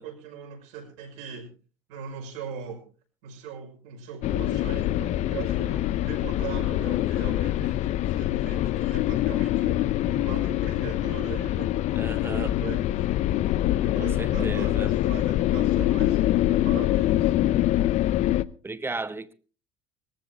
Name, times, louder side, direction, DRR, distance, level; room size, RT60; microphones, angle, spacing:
voice 1, 0.0-1.5 1.9-2.8 3.2-13.2 13.8-17.3, right 7 dB, 65° right, 5.9 m, -40 dB
sound 1, 4.2-18.4, left 14 dB, 45° left, 0.6 m, -24 dB
voice 2, 12.0-12.5 14.0-14.9 18.6-19.3, right 3 dB, 15° right, 1.1 m, -35 dB
22.5 x 15.0 x 2.8 m
figure-of-eight pair, 65°, 16 cm